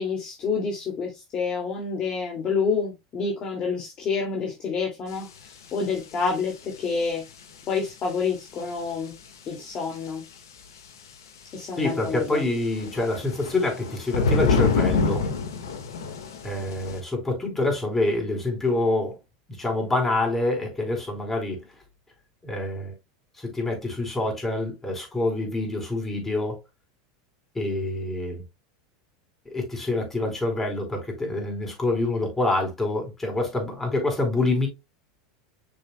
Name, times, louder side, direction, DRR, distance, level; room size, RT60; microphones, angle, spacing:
voice 1, 0.0-5.3 5.7-7.2 7.7-9.1 9.5-10.2 11.5-12.4, left 5 dB, 40° left, 2.4 m, -28 dB
sound 1, 5.2-5.3 6.0-6.1 6.2-6.5 8.7-8.8 9.9-10.1 12.6-17.0, left 4 dB, 85° left, 1.6 m, -26 dB
voice 2, 11.8-15.3 16.4-19.2 19.6-21.6 22.4-22.9 23.4-26.6 27.5-28.4 29.5-34.7, left 2 dB, 15° left, 4.4 m, -26 dB
7.0 x 6.5 x 2.2 m
hypercardioid pair, 105°, 2 cm